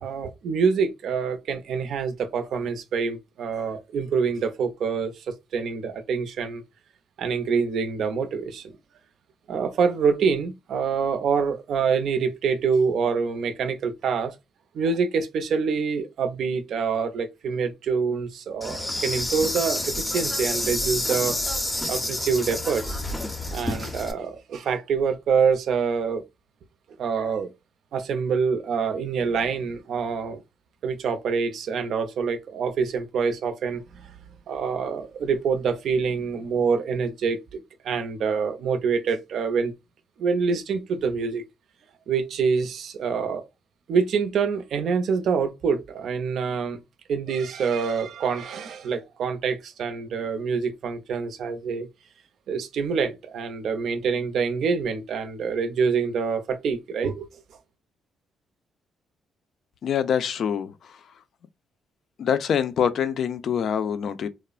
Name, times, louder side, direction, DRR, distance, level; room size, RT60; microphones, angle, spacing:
voice 1, 0.0-6.6 7.2-8.7 9.5-14.3 14.7-21.4 21.9-23.0 23.5-26.2 27.0-27.5 27.9-30.4 30.8-34.1 34.5-39.7 40.2-41.4 42.1-43.4 43.9-46.8 47.1-51.9 52.5-57.3, right 5 dB, 70° right, 0.5 m, -26 dB
Insect, 18.6-24.1, left 1 dB, 15° left, 0.6 m, -28 dB
voice 2, 59.8-60.9 62.2-64.3, left 8 dB, 65° left, 0.4 m, -25 dB
3.1 x 2.0 x 2.3 m
cardioid pair, 90°, 0 cm